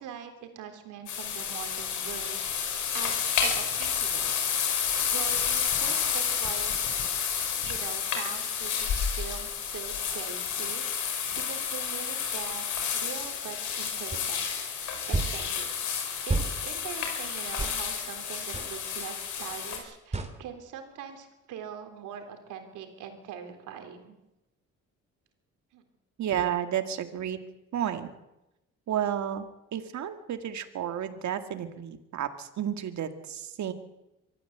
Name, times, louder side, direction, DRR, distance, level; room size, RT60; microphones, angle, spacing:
voice 1, 0.0-2.4 2.7-4.6 4.9-6.7 7.6-10.9 11.4-12.7 12.9-14.4 14.8-15.9 16.3-24.2 25.7-25.8, right 8 dB, 90° right, 5 dB, 3.6 m, -42 dB
sound 1, 1.1-19.8, left 7 dB, 75° left, 4.9 m, -30 dB
sound 2, 14.1-14.3 15.1-15.4 16.3-16.5 17.6-17.8 18.5-18.7 20.1-20.3, right 3 dB, 20° right, 2.8 m, -29 dB
voice 2, 26.2-27.4 27.7-28.1 28.9-29.4 29.7-33.7, right 10 dB, 65° right, 8 dB, 2.1 m, -31 dB
24.0 x 14.5 x 8.0 m, 0.93 s
cardioid pair, 90°, 30 cm